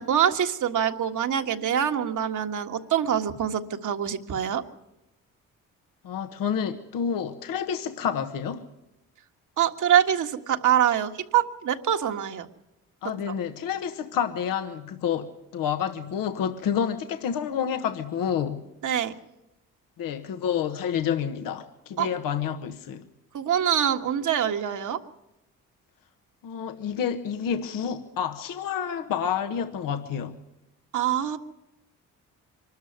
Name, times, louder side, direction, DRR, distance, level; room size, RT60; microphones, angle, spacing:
voice 1, 0.0-4.6 9.6-12.5 13.0-13.1 18.8-19.1 22.0-22.1 23.3-25.0 30.9-31.4, right 9 dB, 65° right, 1.7 m, -24 dB
voice 2, 6.0-8.6 13.0-18.6 20.0-23.0 26.4-30.4, left 8 dB, 80° left, 1.3 m, -29 dB
24.5 x 13.0 x 9.5 m
cardioid pair, 75°, 33 cm